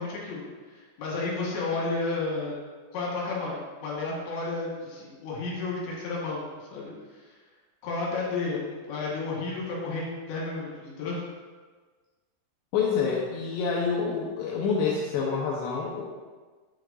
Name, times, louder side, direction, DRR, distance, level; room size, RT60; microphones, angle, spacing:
voice 1, 0.0-2.5 2.9-6.9 7.8-11.2, left 3 dB, 70° left, -4 dB, 3.4 m, -32 dB
voice 2, 12.7-16.0, left 5 dB, 90° left, -3 dB, 2.4 m, -27 dB
8.4 x 6.5 x 2.5 m, 1.4 s
omnidirectional pair, 5.8 m